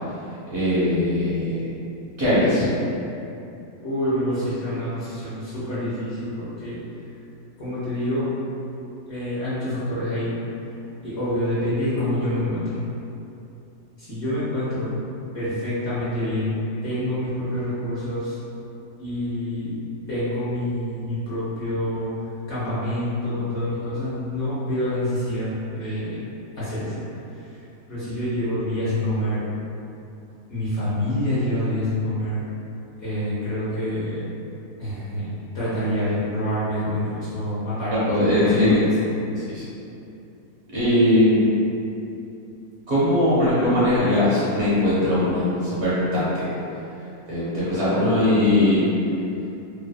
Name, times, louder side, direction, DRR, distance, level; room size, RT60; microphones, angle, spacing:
voice 1, 0.5-1.5 2.2-2.7 38.1-38.8 39.3-39.6 40.7-41.5 42.9-46.5 47.3-48.8, left 1 dB, 60° right, -11 dB, 0.8 m, -20 dB
voice 2, 3.8-6.8 7.6-8.3 9.1-10.3 10.7-12.8 14.0-14.9 15.3-18.4 19.0-19.8 20.1-26.2 26.6-27.0 27.9-29.5 30.5-32.4 33.0-34.3 34.8-38.9 47.9-48.3, left 1 dB, 60° left, -11 dB, 0.8 m, -27 dB
2.7 x 2.2 x 2.3 m, 2.8 s
omnidirectional pair, 1.6 m